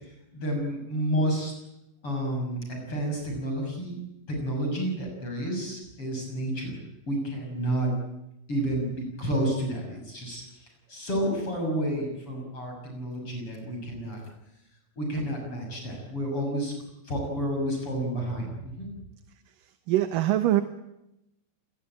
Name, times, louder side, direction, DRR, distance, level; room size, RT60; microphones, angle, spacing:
voice 1, 0.3-1.5 2.0-4.0 4.3-6.8 7.1-7.9 8.5-14.2 15.0-16.7 17.0-18.9, right 1 dB, 35° left, 1 dB, 7.7 m, -30 dB
voice 2, 19.5-20.6, right 14 dB, 70° right, 10 dB, 2.6 m, -24 dB
28.0 x 21.5 x 9.1 m, 0.87 s
omnidirectional pair, 4.3 m